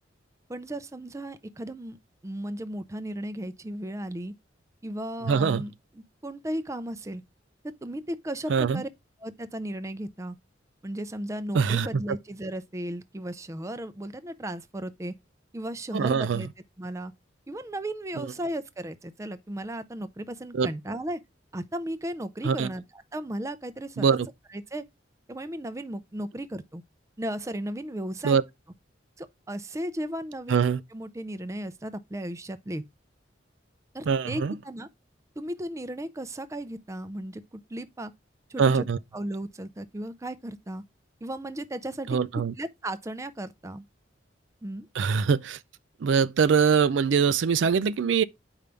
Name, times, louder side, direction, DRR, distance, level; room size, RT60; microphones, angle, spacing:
voice 1, 0.5-2.0 2.2-4.3 4.8-7.2 7.6-8.9 9.2-10.4 10.8-15.1 15.5-16.5 16.8-17.1 17.5-21.2 21.5-24.2 24.5-24.8 25.3-26.8 27.2-28.4 29.2-30.6 30.9-32.8 33.9-34.9 35.4-38.1 38.5-38.9 39.1-40.8 41.2-43.8 44.6-44.9, right 1 dB, 15° right, 0.5 m, -35 dB
voice 2, 5.3-5.6 8.5-8.8 11.5-11.9 15.9-16.4 20.5-20.7 22.4-22.7 24.0-24.3 28.2-28.4 30.5-30.8 34.1-34.5 38.6-39.0 42.1-42.5 45.0-45.6 46.0-48.2, right 6 dB, 75° right, 0.4 m, -23 dB
8.0 x 5.2 x 3.4 m
head